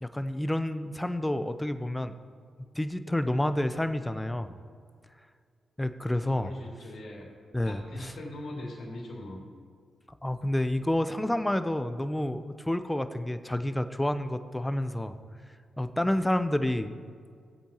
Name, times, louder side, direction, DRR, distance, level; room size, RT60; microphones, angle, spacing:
voice 1, 0.0-2.1 2.7-4.6 5.8-6.5 7.5-8.1 10.2-15.2 15.8-17.0, left 1 dB, 15° left, 10 dB, 0.7 m, -29 dB
voice 2, 6.0-7.3 7.6-9.4, left 1 dB, 65° left, -2 dB, 2.9 m, -41 dB
17.5 x 8.2 x 3.0 m, 2.1 s
supercardioid pair, 45°, 0 cm